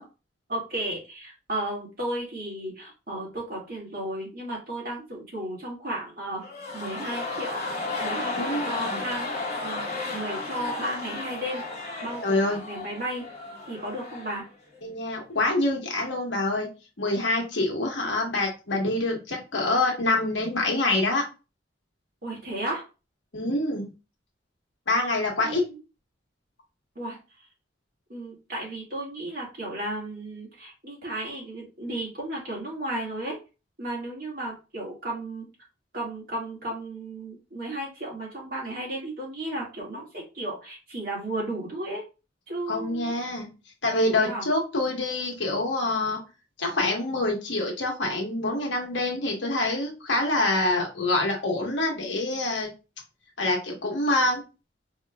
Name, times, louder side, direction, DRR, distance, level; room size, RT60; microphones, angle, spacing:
voice 1, 0.5-6.4 6.7-7.6 8.0-9.3 9.6-9.9 10.1-11.6 12.0-13.3 13.7-14.5 22.2-22.9 25.4-25.8 27.0-27.2 28.1-33.4 33.8-35.5 35.9-42.0 42.5-43.1 44.2-44.4, right 1 dB, 50° right, -3 dB, 1.7 m, -34 dB
sound 1, 6.4-14.5 14.7-14.8, left 2 dB, 35° left, 1.1 m, -33 dB
voice 2, 8.3-9.0 12.2-12.6 14.8-16.7 17.0-21.2 23.3-23.8 24.9-25.6 42.7-43.5 43.8-46.2 46.6-52.7 53.4-54.4, left 2 dB, 75° left, 1 dB, 1.2 m, -26 dB
4.5 x 2.9 x 2.2 m, 0.30 s
head